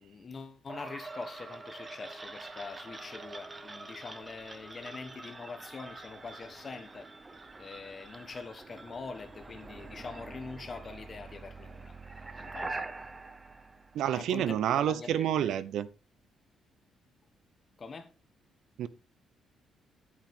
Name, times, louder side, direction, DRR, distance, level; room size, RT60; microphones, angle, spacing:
voice 1, 0.0-7.1 7.6-12.0 12.3-12.9 14.1-15.6 17.8-18.1, left 4 dB, 25° left, 1.3 m, -44 dB
sound 1, 0.7-14.6, right 3 dB, 15° right, 0.7 m, -45 dB
voice 2, 13.9-15.9 18.8-18.9, right 10 dB, 65° right, 0.6 m, -29 dB
10.5 x 8.9 x 3.6 m
cardioid pair, 175°, 0 cm